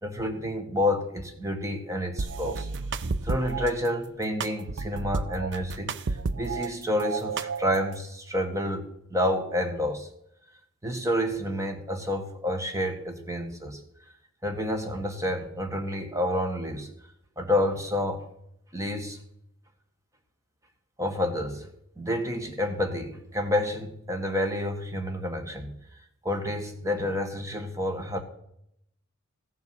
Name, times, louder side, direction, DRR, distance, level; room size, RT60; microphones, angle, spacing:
voice 1, 0.0-2.7 3.2-10.1 10.8-13.8 14.4-16.9 17.4-18.2 18.7-19.2 21.0-21.7 22.0-25.7 26.2-28.2, left 1 dB, 15° right, 4 dB, 1.5 m, -29 dB
sound 1, 2.2-3.7 4.4-6.7 7.0-8.0, right 4 dB, 55° right, 0.6 m, -31 dB
15.0 x 7.1 x 6.0 m, 0.76 s
head